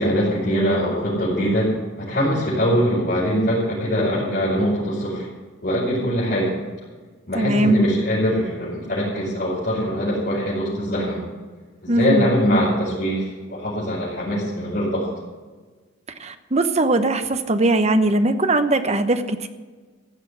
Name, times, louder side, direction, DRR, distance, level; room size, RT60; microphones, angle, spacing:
voice 1, 0.0-1.7 2.0-5.3 5.6-6.5 7.3-11.2 11.8-15.1, equal, 50° left, -10 dB, 5.4 m, -22 dB
voice 2, 7.3-7.8 11.9-12.3 16.2-19.5, right 2 dB, 35° right, 9 dB, 0.9 m, -20 dB
15.5 x 6.4 x 9.9 m, 1.4 s
head